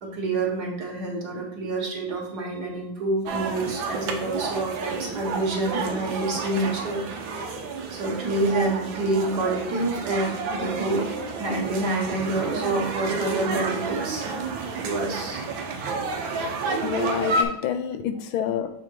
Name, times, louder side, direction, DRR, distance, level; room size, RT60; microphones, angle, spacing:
voice 1, 0.0-7.1 7.4-11.1 11.4-14.2 14.8-15.6, right 2 dB, 55° right, -1 dB, 1.8 m, -28 dB
sound 1, 3.3-17.4, right 3 dB, 75° right, 1.6 m, -30 dB
voice 2, 16.7-18.7, left 8 dB, 85° left, 9 dB, 1.5 m, -28 dB
7.0 x 3.6 x 4.6 m, 0.78 s
omnidirectional pair, 2.2 m